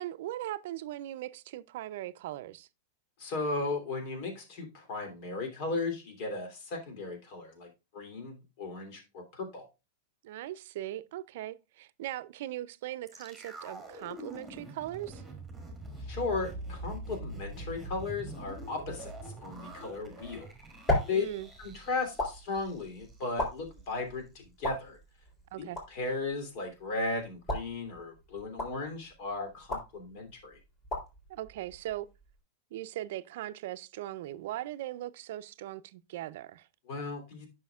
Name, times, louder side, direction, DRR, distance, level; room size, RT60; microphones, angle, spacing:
voice 1, 0.0-2.7 10.2-15.2 21.1-21.5 25.5-25.8 31.3-32.1 32.7-36.7, right 14 dB, 65° right, 0.5 m, -39 dB
voice 2, 3.2-9.7 15.9-20.5 21.1-21.2 21.6-25.0 25.6-30.6 36.9-37.5, left 3 dB, 50° left, 3.1 m, -36 dB
sound 1, 13.1-23.2 23.5-23.6, right 1 dB, 5° right, 2.6 m, -44 dB
sound 2, 20.2-32.4, left 1 dB, 20° left, 3.5 m, -38 dB
10.5 x 6.3 x 2.4 m
supercardioid pair, 150°, 0 cm